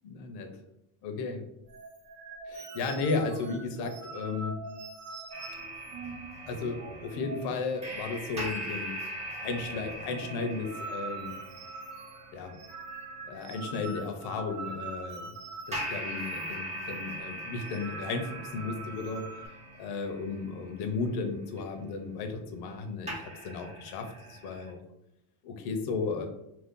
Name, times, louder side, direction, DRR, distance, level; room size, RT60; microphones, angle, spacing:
voice 1, 0.0-0.5 1.0-1.4 2.5-4.5 6.5-9.0 9.4-11.4 12.3-12.6 13.2-15.3 15.7-19.3 19.8-24.8 25.4-26.3, left 4 dB, 55° left, 5 dB, 0.6 m, -34 dB
sound 1, 1.7-7.6 7.9-8.1 8.3-8.9 9.2-16.5 16.8-17.0 17.5-19.5, right 3 dB, 90° right, 0.7 m, -43 dB
sound 2, 5.3-14.1 15.7-22.8 23.1-24.7, right 1 dB, 15° right, 0.6 m, -41 dB
2.5 x 2.2 x 3.6 m, 0.83 s
cardioid pair, 135°, 46 cm